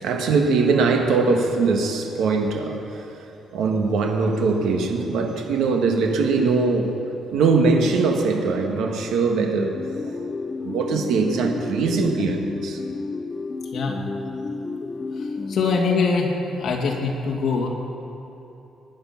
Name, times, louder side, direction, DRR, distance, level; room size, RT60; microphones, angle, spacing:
voice 1, 0.0-3.2 3.5-7.0 7.3-9.7 10.0-10.2 10.6-12.8, right 4 dB, 85° right, 3 dB, 1.6 m, -21 dB
sound 1, 9.4-16.5, left 3 dB, 20° left, 0.5 m, -31 dB
voice 2, 15.2-17.7, left 4 dB, 55° left, 0 dB, 2.3 m, -23 dB
20.0 x 9.7 x 5.9 m, 2.9 s
cardioid pair, 155°, 0 cm